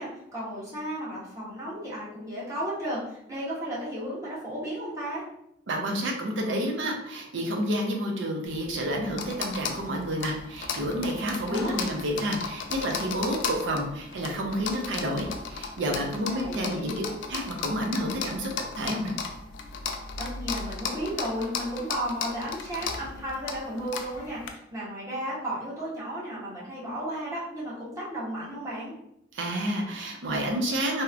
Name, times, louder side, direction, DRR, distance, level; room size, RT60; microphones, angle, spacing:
voice 1, 0.0-5.2 11.3-11.8 16.2-16.9 20.2-28.9, right 1 dB, 15° right, -8 dB, 0.8 m, -34 dB
voice 2, 5.7-17.0 17.3-18.5 18.8-19.1 29.3-31.0, equal, 85° right, 1 dB, 0.5 m, -29 dB
sound 1, 8.5-24.5, left 5 dB, 75° left, 0.3 m, -36 dB
2.8 x 2.0 x 2.4 m, 0.78 s
head